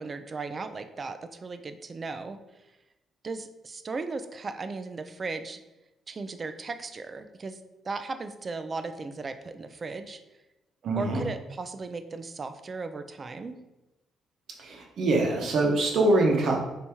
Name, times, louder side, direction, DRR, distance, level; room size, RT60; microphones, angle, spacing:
voice 1, 0.0-2.4 3.2-5.6 6.1-7.6 7.8-10.2 11.0-13.6, right 3 dB, 35° right, 9 dB, 0.4 m, -36 dB
voice 2, 10.8-11.2 14.6-16.6, right 2 dB, 65° right, 1 dB, 0.9 m, -24 dB
3.4 x 2.8 x 4.4 m, 0.99 s
cardioid pair, 90°, 0 cm